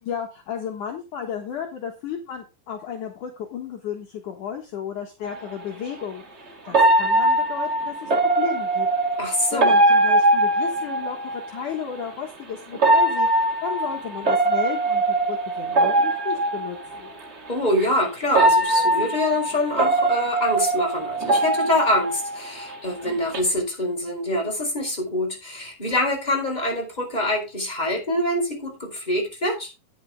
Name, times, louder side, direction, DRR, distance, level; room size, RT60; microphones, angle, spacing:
voice 1, 0.0-8.1 8.4-8.9 9.5-17.1, left 8 dB, 65° left, 2 dB, 2.7 m, -33 dB
sound 1, 5.2-5.4 6.7-11.5 12.7-17.0 17.8-17.9 18.3-22.7 23.1-23.4, right 2 dB, 35° right, 1.0 m, -21 dB
voice 2, 9.2-9.7 17.5-29.7, left 1 dB, 10° left, 0 dB, 4.4 m, -25 dB
10.5 x 9.7 x 3.7 m, 0.26 s
omnidirectional pair, 4.2 m